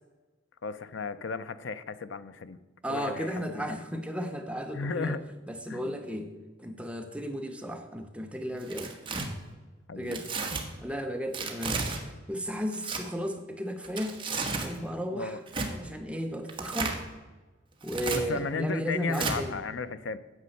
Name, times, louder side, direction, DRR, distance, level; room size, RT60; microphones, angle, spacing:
voice 1, 0.6-2.6 2.9-3.8 4.7-5.2 5.7-6.0 9.9-10.2 15.1-15.4 18.1-20.2, left 4 dB, 75° left, 13 dB, 0.6 m, -35 dB
voice 2, 2.8-5.2 5.5-6.3 6.6-8.9 9.9-10.3 10.8-11.9 12.3-14.2 14.5-15.4 15.7-17.0 17.8-19.6, equal, 5° right, 5 dB, 0.7 m, -34 dB
Tearing, 8.6-9.3 10.1-10.6 11.3-12.0 12.7-13.0 13.8-14.7 15.5-15.7 16.5-17.0 17.8-18.2 19.1-19.4, right 4 dB, 30° right, 1.4 m, -33 dB
9.7 x 7.5 x 6.5 m, 1.2 s
head